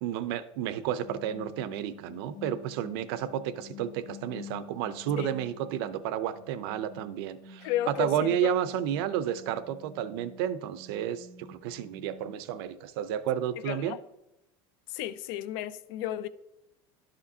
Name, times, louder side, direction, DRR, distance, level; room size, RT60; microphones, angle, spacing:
voice 1, 0.0-7.7 8.0-14.0, right 10 dB, 75° right, 0.6 m, -31 dB
sound 1, 0.7-6.0 6.3-12.6, left 4 dB, 20° left, 1.0 m, -48 dB
voice 2, 7.6-8.5 13.7-14.0 14.9-16.3, left 12 dB, 60° left, 0.4 m, -33 dB
11.5 x 5.1 x 2.7 m
cardioid pair, 175°, 12 cm